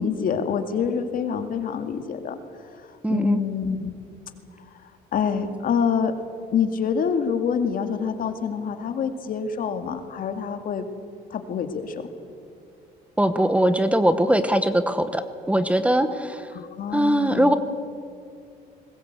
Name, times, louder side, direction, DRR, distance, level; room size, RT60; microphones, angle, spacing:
voice 1, 0.0-2.4 2.8-3.9 5.1-6.1 6.5-10.9 11.3-12.1 16.5-17.6, left 6 dB, 55° left, 7 dB, 2.2 m, -26 dB
voice 2, 3.0-3.4 13.2-16.5 16.9-17.6, right 1 dB, 5° right, 10 dB, 1.1 m, -21 dB
21.0 x 20.5 x 8.2 m, 2.4 s
cardioid pair, 110°, 17 cm